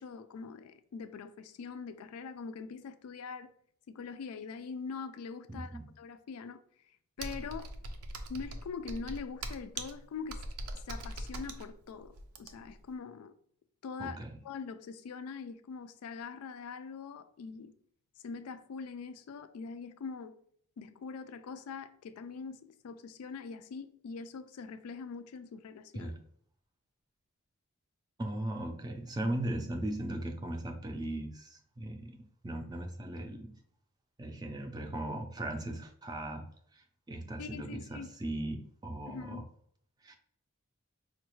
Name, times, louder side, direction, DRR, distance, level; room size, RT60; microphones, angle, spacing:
voice 1, 0.0-3.5 3.9-6.6 7.2-7.7 8.3-10.5 10.7-13.3 13.8-17.7 18.2-20.3 20.8-26.1 37.4-38.1 39.1-39.5, left 5 dB, 85° left, 0.3 m, -43 dB
voice 2, 5.5-5.9 14.0-14.4 25.9-26.2 28.2-33.6 34.2-36.5 36.7-39.4 40.0-40.2, right 1 dB, 20° right, 0.4 m, -38 dB
Computer keyboard, 7.2-12.8, right 2 dB, 80° right, 0.5 m, -41 dB
4.7 x 2.3 x 3.0 m
head